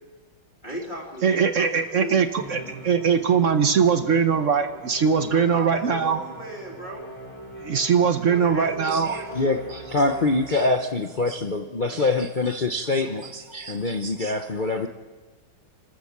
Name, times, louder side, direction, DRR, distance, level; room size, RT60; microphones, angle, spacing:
voice 1, 0.6-2.4 5.3-7.0 8.2-9.5, right 1 dB, 25° left, -4 dB, 3.1 m, -37 dB
voice 2, 1.2-6.2 7.6-9.1, right 6 dB, 55° right, 9 dB, 0.9 m, -21 dB
Musical instrument, 2.4-10.9, right 2 dB, 15° right, 3.5 m, -41 dB
voice 3, 8.8-14.9, left 2 dB, 55° left, 5 dB, 0.5 m, -25 dB
28.0 x 13.0 x 7.4 m, 1.4 s
omnidirectional pair, 2.1 m